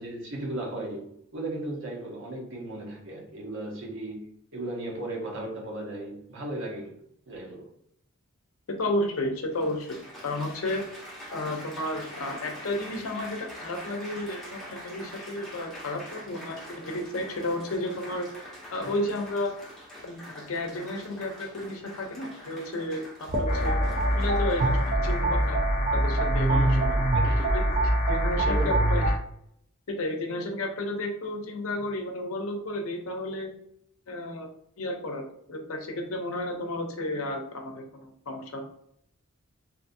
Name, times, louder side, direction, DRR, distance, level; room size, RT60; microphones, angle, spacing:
voice 1, 0.0-7.0 7.3-7.7 18.8-18.9 26.5-27.7 28.4-28.9, right 1 dB, 60° right, -1 dB, 0.9 m, -36 dB
voice 2, 8.7-10.8 11.3-18.3 18.7-19.5 20.0-23.8 24.1-25.6 25.9-26.9 27.5-27.7 28.1-29.1 29.9-33.5 34.1-34.5 34.8-35.2 35.5-38.6, left 1 dB, 75° left, 3 dB, 0.6 m, -32 dB
Applause, 8.8-8.9 9.5-25.4 26.2-26.5, equal, ahead, 0.7 m, -44 dB
sound 1, 23.3-29.1, right 1 dB, 35° right, 0.5 m, -24 dB
sound 2, 23.5-29.2, left 1 dB, 30° left, 0.5 m, -33 dB
2.6 x 2.6 x 2.6 m, 0.72 s
head